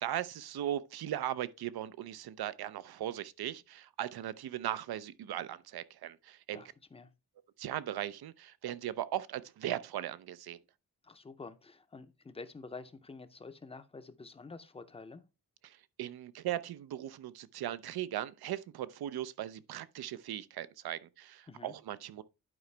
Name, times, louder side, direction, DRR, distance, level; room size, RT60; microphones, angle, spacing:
voice 1, 0.0-6.6 7.6-10.6 15.6-22.2, right 12 dB, 85° right, 0.6 m, -38 dB
voice 2, 6.5-7.1 11.0-15.2 21.5-21.7, left 4 dB, 15° left, 0.6 m, -48 dB
11.0 x 5.0 x 3.3 m
wide cardioid pair, 170°, 37 cm